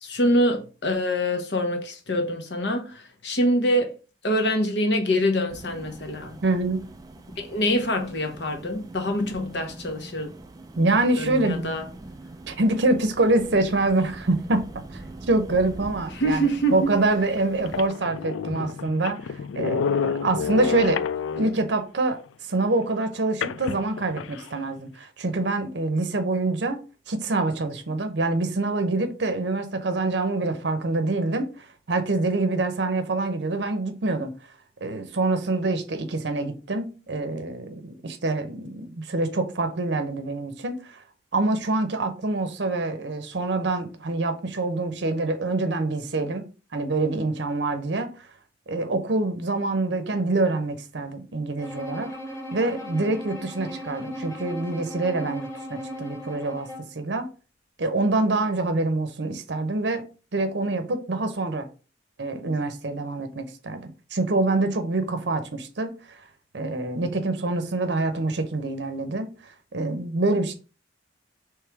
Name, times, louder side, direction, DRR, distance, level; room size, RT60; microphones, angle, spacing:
voice 1, 0.0-3.9 4.2-6.4 7.4-10.3 11.2-11.9 16.1-16.9, equal, 60° left, 0.9 m, -25 dB
sound 1, 5.5-17.9, right 2 dB, 20° right, 0.3 m, -43 dB
voice 2, 6.4-6.9 10.8-11.7 12.5-14.6 14.9-15.0 15.3-16.4 16.7-21.0 21.4-22.2 22.5-26.8 27.1-34.3 34.8-41.0 41.3-46.5 46.7-48.3 48.7-52.1 52.5-56.7 56.9-57.3 57.8-60.0 60.3-61.7 62.2-66.2 66.5-69.3 69.7-70.5, right 2 dB, 60° right, 0.7 m, -25 dB
sound 2, 16.7-16.8 17.4-17.5 17.7-21.7 23.4-24.5, left 7 dB, 80° left, 0.3 m, -29 dB
Bowed string instrument, 51.6-57.0, equal, 15° left, 0.8 m, -37 dB
3.5 x 3.2 x 4.5 m
head